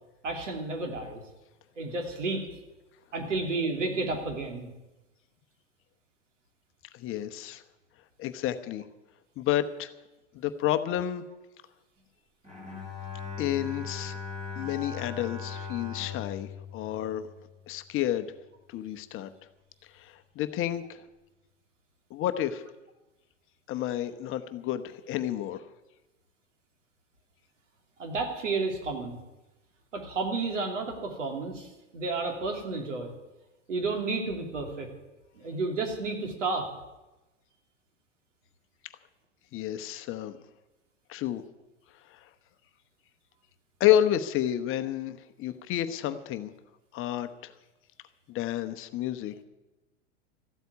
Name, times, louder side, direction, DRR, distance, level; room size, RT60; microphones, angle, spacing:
voice 1, 0.2-1.2 1.8-2.4 3.1-4.7 28.0-29.2 29.9-33.1 33.7-34.9 35.4-36.7, right 3 dB, 80° right, 3 dB, 3.1 m, -31 dB
voice 2, 6.9-7.6 8.2-8.8 9.4-9.9 10.3-11.2 13.4-14.2 14.5-17.2 17.7-18.3 18.7-19.3 19.9-21.0 22.1-22.7 23.7-25.6 39.5-40.4 41.1-41.4 42.1-42.2 43.8-46.5 46.9-47.5 48.3-49.3, left 12 dB, 35° left, 10 dB, 0.9 m, -30 dB
Bowed string instrument, 12.4-17.8, left 6 dB, 20° right, 4.6 m, -39 dB
14.5 x 8.0 x 9.5 m, 1.0 s
hypercardioid pair, 100°, 37 cm